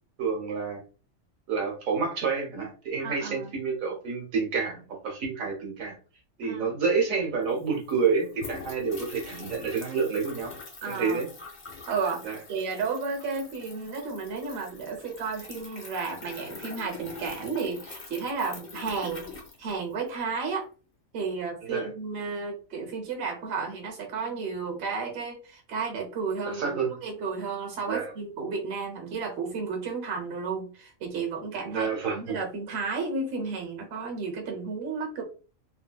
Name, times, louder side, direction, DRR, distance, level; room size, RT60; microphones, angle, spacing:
voice 1, 0.2-0.9 1.5-6.0 6.4-10.5 10.9-11.3 12.2-12.4 21.6-21.9 26.5-26.9 27.9-28.1 31.7-32.4, right 5 dB, 85° right, 0 dB, 1.4 m, -29 dB
voice 2, 3.0-3.5 6.4-6.7 10.8-11.2 11.8-19.3 19.6-20.6 21.1-35.2, right 4 dB, 55° right, 2 dB, 1.0 m, -33 dB
sound 1, 7.2-7.3 7.4-20.2, left 4 dB, 40° left, 0.9 m, -44 dB
3.1 x 2.6 x 2.2 m, 0.36 s
omnidirectional pair, 1.4 m